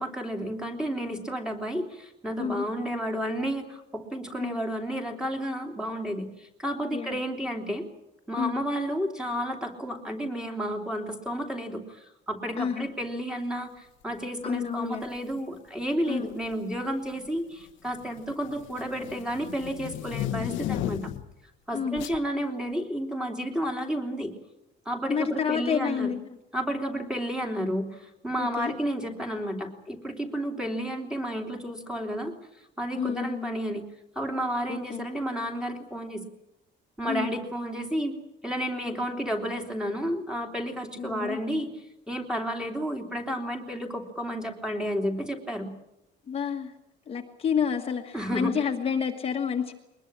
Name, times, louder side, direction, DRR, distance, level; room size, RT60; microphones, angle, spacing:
voice 1, 0.0-7.8 8.3-21.1 21.7-24.3 24.8-26.1 26.5-32.4 32.8-33.8 34.1-36.2 37.0-38.2 38.4-41.7 42.1-45.7 48.1-48.5, equal, 5° right, 3 dB, 3.0 m, -31 dB
voice 2, 6.9-7.2 8.4-8.5 12.6-12.9 14.4-15.0 16.1-16.3 21.7-22.0 25.1-26.4 28.4-28.7 33.0-33.5 34.7-35.1 37.1-37.3 41.0-41.4 46.3-46.7 47.1-49.7, left 7 dB, 30° left, 3 dB, 1.5 m, -29 dB
sound 1, 15.0-15.3 16.3-16.7 17.1-21.4 22.0-22.2, left 13 dB, 80° left, 1.0 m, -35 dB
22.5 x 20.5 x 8.7 m, 0.87 s
cardioid pair, 175°, 19 cm